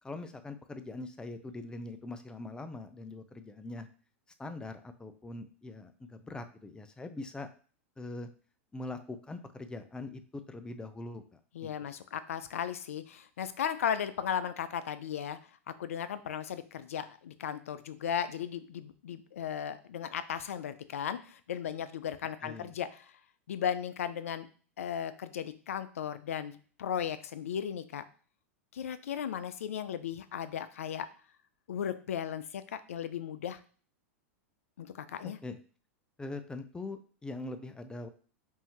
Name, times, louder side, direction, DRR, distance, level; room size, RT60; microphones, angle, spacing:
voice 1, 0.0-3.9 4.4-7.5 8.0-8.3 8.7-11.9 22.4-22.7 35.2-35.6 36.2-38.1, left 2 dB, 10° left, 9 dB, 0.5 m, -42 dB
voice 2, 11.6-15.4 15.8-22.9 23.5-24.5 24.8-26.5 26.8-28.0 28.7-31.1 31.7-33.6 34.8-35.4, left 8 dB, 80° left, 13 dB, 0.4 m, -36 dB
5.4 x 2.7 x 3.0 m, 0.42 s
hypercardioid pair, 105°, 7 cm